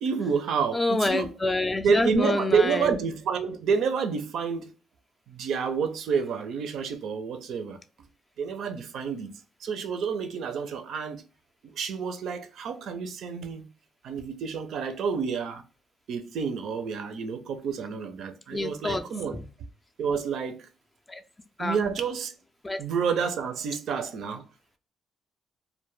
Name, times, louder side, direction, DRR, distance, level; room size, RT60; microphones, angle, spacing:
voice 1, 0.0-1.3 1.8-4.7 5.3-7.8 8.4-9.3 9.6-11.2 11.6-13.7 14.0-15.6 16.1-19.4 20.0-20.7 21.6-22.3 22.8-24.4, right 6 dB, 75° right, 0.4 m, -29 dB
voice 2, 0.7-2.9 18.5-19.0 21.1-21.2 21.6-21.8 22.6-22.8, left 2 dB, 20° left, 0.3 m, -27 dB
2.2 x 2.1 x 3.1 m
cardioid pair, 90°, 0 cm